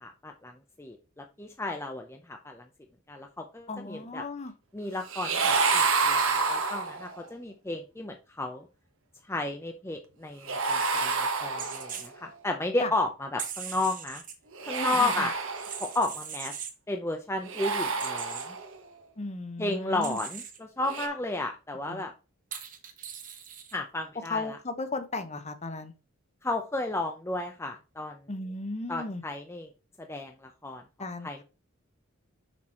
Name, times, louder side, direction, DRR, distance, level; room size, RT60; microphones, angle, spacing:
voice 1, 0.0-2.6 3.1-4.2 4.7-8.7 9.3-14.2 14.6-15.4 15.8-16.5 16.9-18.6 19.6-22.1 23.7-24.6 26.4-28.2 28.9-29.7 30.0-30.8 31.2-31.4, left 2 dB, 10° left, 0.6 m, -33 dB
voice 2, 3.7-4.5 12.8-12.9 14.8-15.3 19.2-20.2 21.9-22.1 24.3-25.9 28.3-29.2 31.0-31.4, left 3 dB, 30° left, 0.9 m, -35 dB
sound 1, 5.1-7.2 10.5-12.1 14.5-16.1 17.4-18.8 20.8-21.1, right 4 dB, 70° right, 1.2 m, -28 dB
sound 2, 11.6-12.1 13.4-14.3 15.5-16.8 18.0-18.5 20.0-20.6 22.5-23.7, right 8 dB, 40° right, 1.2 m, -40 dB
6.1 x 6.1 x 4.3 m
head